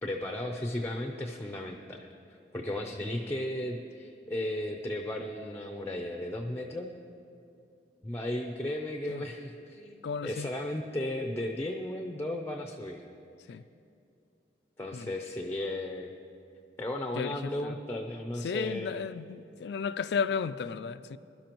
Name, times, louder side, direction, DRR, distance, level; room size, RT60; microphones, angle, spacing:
voice 1, 0.0-6.9 8.0-13.0 13.5-13.6 14.8-16.1 16.8-19.0, left 1 dB, 10° left, 0.5 m, -35 dB
voice 2, 10.0-10.5 13.5-13.7 14.9-15.1 17.2-17.8 18.4-21.2, left 6 dB, 65° left, 0.3 m, -34 dB
21.0 x 12.0 x 3.0 m
head